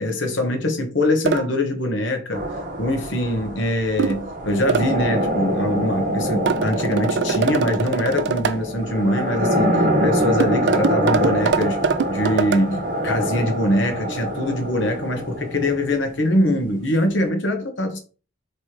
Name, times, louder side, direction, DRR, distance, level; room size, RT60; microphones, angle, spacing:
voice 1, 0.0-2.5 2.8-18.0, left 1 dB, 75° left, 1.1 m, -23 dB
sound 1, 1.2-1.5 4.0-4.3 4.7-4.9 6.5-8.6 10.4-12.6, right 6 dB, 65° right, 0.3 m, -23 dB
sound 2, 2.3-16.2, equal, 45° right, 0.9 m, -25 dB
3.3 x 3.1 x 4.4 m
head